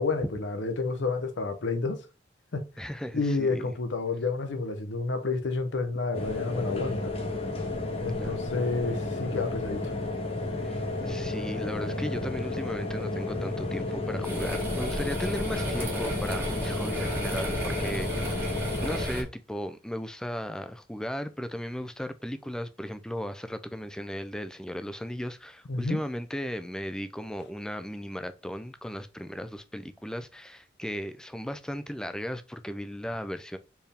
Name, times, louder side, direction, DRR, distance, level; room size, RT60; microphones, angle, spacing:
voice 1, 0.0-2.1 2.5-2.6 3.1-7.1 8.0-9.8 25.7-26.0, left 3 dB, 80° left, 0.7 m, -30 dB
voice 2, 2.8-3.7 8.1-8.4 10.6-33.6, equal, 5° left, 0.3 m, -36 dB
sound 1, 6.1-19.1, left 2 dB, 35° left, 0.9 m, -32 dB
sound 2, 14.2-19.2, equal, 10° right, 1.2 m, -33 dB
4.5 x 3.4 x 3.4 m
head